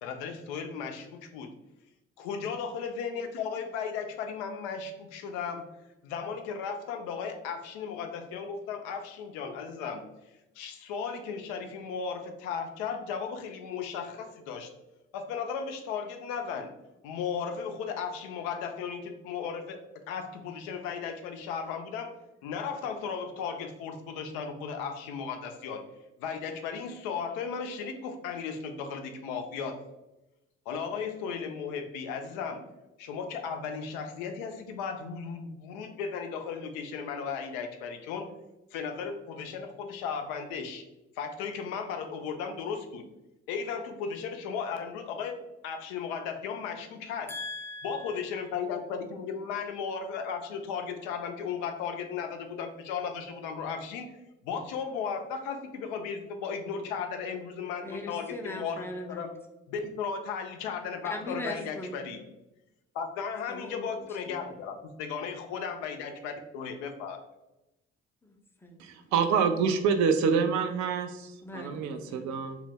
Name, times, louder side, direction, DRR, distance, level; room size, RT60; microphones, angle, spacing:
voice 1, 0.0-1.5 2.2-5.6 6.0-10.0 10.6-14.7 15.1-16.7 17.0-22.1 22.4-25.8 26.2-29.8 30.7-32.6 33.0-38.3 38.7-40.8 41.2-43.0 43.5-45.4 45.6-47.3 47.8-54.1 54.4-59.3 59.7-62.2 62.9-67.2, left 6 dB, 70° left, 6 dB, 0.5 m, -35 dB
voice 2, 47.3-48.5 57.8-59.3 61.0-62.0 63.5-64.5 68.2-68.9 71.4-72.4, left 1 dB, 5° left, 2 dB, 0.5 m, -40 dB
voice 3, 68.8-72.6, right 6 dB, 55° right, 8 dB, 0.4 m, -27 dB
2.2 x 2.0 x 3.4 m, 0.96 s
hypercardioid pair, 45°, 36 cm